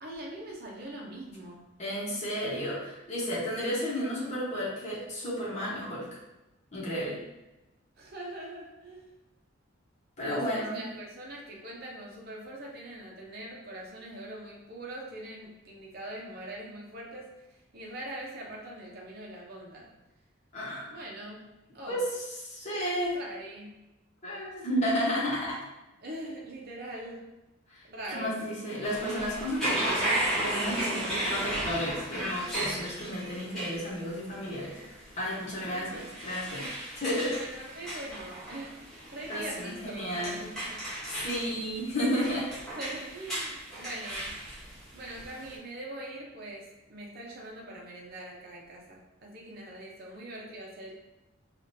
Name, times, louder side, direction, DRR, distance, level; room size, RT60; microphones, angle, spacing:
voice 1, 0.0-1.7 8.0-9.1 10.2-19.9 20.9-22.0 23.1-23.8 26.0-27.3 27.9-28.4 35.8-36.1 37.3-40.8 42.8-44.4 44.9-51.0, right 1 dB, 45° right, -3 dB, 0.8 m, -42 dB
voice 2, 1.8-6.1 6.7-7.2 10.2-10.8 20.5-20.9 21.9-23.2 24.2-25.6 27.7-27.8 28.1-34.8 35.2-36.7 36.9-37.4 39.3-40.4 41.1-42.5, equal, 30° left, -6 dB, 1.1 m, -32 dB
sound 1, 28.8-45.5, right 1 dB, ahead, 1.2 m, -35 dB
4.9 x 2.5 x 2.7 m, 0.99 s
head